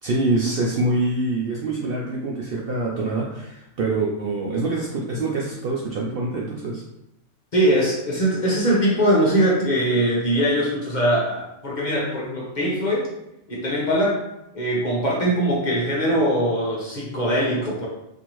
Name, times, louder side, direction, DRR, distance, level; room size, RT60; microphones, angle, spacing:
voice 1, 0.0-6.8, right 2 dB, 60° right, -3 dB, 0.6 m, -25 dB
voice 2, 7.5-13.1 13.5-14.2 14.5-17.9, equal, 40° left, -5 dB, 0.9 m, -21 dB
4.3 x 2.7 x 3.0 m, 0.86 s
omnidirectional pair, 1.4 m